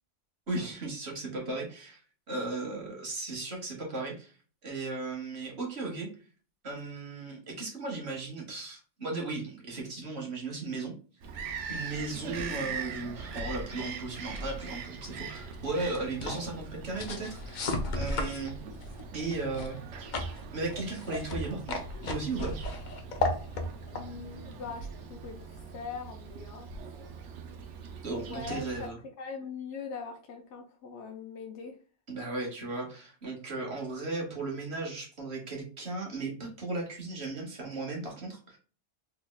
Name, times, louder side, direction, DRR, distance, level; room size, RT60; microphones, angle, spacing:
voice 1, 0.5-2.0 2.3-4.4 4.6-6.1 6.6-18.5 19.1-20.2 20.5-22.6 28.0-29.0 32.1-38.6, right 3 dB, 65° right, 0 dB, 1.4 m, -36 dB
Bird vocalization bird call bird song, 11.2-28.9, right 5 dB, 85° right, 0.9 m, -42 dB
sound 1, 14.3-25.4, left 2 dB, 50° left, 0.6 m, -37 dB
voice 2, 23.9-26.7 28.2-28.9 29.2-31.8, left 5 dB, 85° left, 3 dB, 0.9 m, -41 dB
3.5 x 3.1 x 2.2 m, 0.38 s
omnidirectional pair, 1.2 m